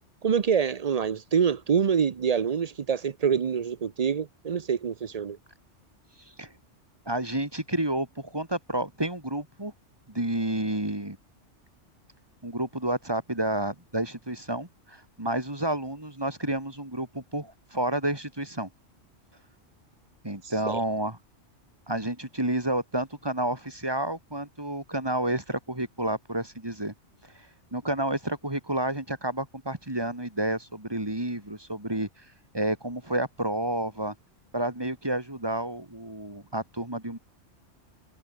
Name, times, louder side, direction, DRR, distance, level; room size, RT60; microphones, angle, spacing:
voice 1, 0.2-5.4 20.4-20.8, right 7 dB, 40° right, 0.6 m, -26 dB
voice 2, 7.1-9.7 10.1-11.2 12.4-18.7 20.2-21.2 21.9-26.9 27.3-27.5 27.7-32.1 32.5-34.1 34.5-37.2, right 1 dB, 20° right, 3.4 m, -30 dB
omnidirectional pair, 1.3 m